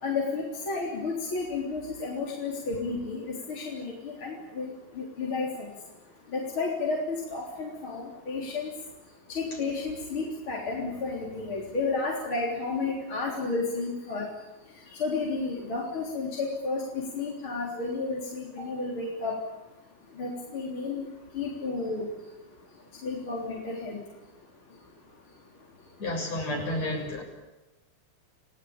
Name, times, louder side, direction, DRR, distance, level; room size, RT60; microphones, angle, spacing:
voice 1, 0.0-5.7 6.3-8.7 9.3-14.2 15.0-19.4 20.2-21.1 21.3-22.1 23.0-24.0, left 3 dB, 40° left, -2 dB, 4.3 m, -32 dB
voice 2, 26.0-27.2, left 1 dB, 55° left, 0 dB, 8.4 m, -31 dB
30.0 x 18.0 x 8.9 m, 1.1 s
omnidirectional pair, 3.6 m